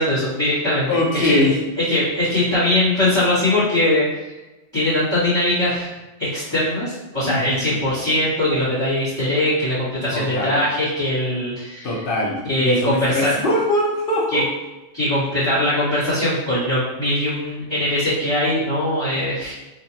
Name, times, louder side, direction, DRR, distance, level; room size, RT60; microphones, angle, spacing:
voice 1, 0.0-0.9 1.2-4.3 4.7-5.9 6.2-11.9 12.5-13.3 14.3-14.4 14.9-19.5, left 1 dB, 20° left, -12 dB, 1.3 m, -21 dB
voice 2, 0.9-1.6 7.2-7.8 10.1-10.6 11.8-14.5, left 1 dB, 50° left, -3 dB, 0.9 m, -22 dB
3.6 x 2.4 x 2.9 m, 1.1 s
omnidirectional pair, 1.3 m